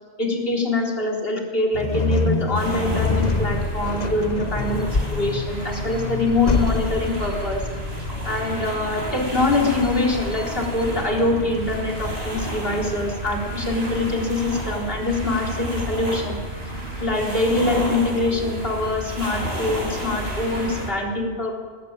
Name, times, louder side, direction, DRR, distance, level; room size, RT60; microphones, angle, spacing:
voice 1, 0.2-7.7 8.2-16.4 17.0-21.6, left 2 dB, 60° left, 0 dB, 4.0 m, -24 dB
sound 1, 1.7-12.9, left 3 dB, 40° left, 1.2 m, -27 dB
sound 2, 2.5-20.9, right 1 dB, 70° right, 5.9 m, -31 dB
21.0 x 19.0 x 8.8 m, 1.5 s
omnidirectional pair, 1.1 m